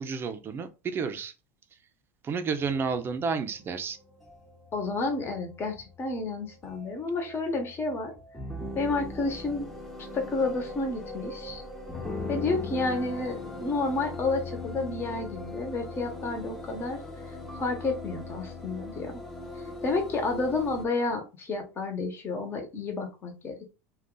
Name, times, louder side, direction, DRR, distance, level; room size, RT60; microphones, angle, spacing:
voice 1, 0.0-1.3 2.2-4.0, right 5 dB, 30° right, 0.6 m, -31 dB
sound 1, 2.6-20.9, left 2 dB, ahead, 0.8 m, -40 dB
voice 2, 4.7-8.1 8.7-9.7 10.1-11.6 12.3-17.0 17.6-19.2 19.8-23.7, left 3 dB, 30° left, 1.0 m, -30 dB
2.5 x 2.3 x 3.8 m
supercardioid pair, 105°, 8 cm